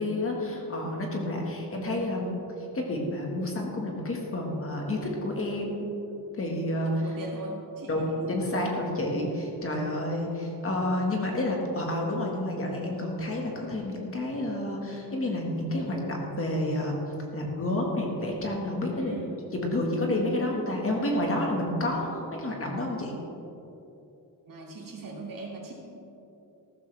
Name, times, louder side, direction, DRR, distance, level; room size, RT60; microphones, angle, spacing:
voice 1, 0.0-2.4 2.7-5.9 6.3-6.9 7.9-17.0 17.3-19.1 19.5-23.2, left 1 dB, 35° left, 0 dB, 1.7 m, -29 dB
voice 2, 6.8-8.5 8.8-9.0 19.0-19.4 24.5-25.7, right 2 dB, 55° right, -2 dB, 2.6 m, -40 dB
14.5 x 13.0 x 3.4 m, 2.9 s
wide cardioid pair, 175°, 39 cm